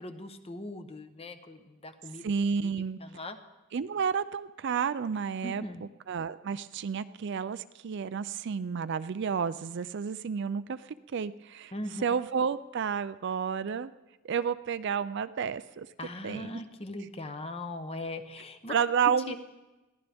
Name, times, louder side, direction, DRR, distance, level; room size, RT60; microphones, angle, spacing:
voice 1, 0.0-2.3 2.6-2.7 3.0-3.4 5.4-5.8 11.7-12.0 16.0-18.7 19.3-19.4, left 1 dB, 30° left, 9 dB, 0.9 m, -40 dB
voice 2, 2.2-3.0 3.7-5.6 6.1-11.7 12.0-13.9 14.3-15.9 16.2-16.6 18.7-19.3, right 6 dB, 55° right, 14 dB, 0.4 m, -31 dB
21.5 x 15.5 x 3.5 m, 1.1 s
head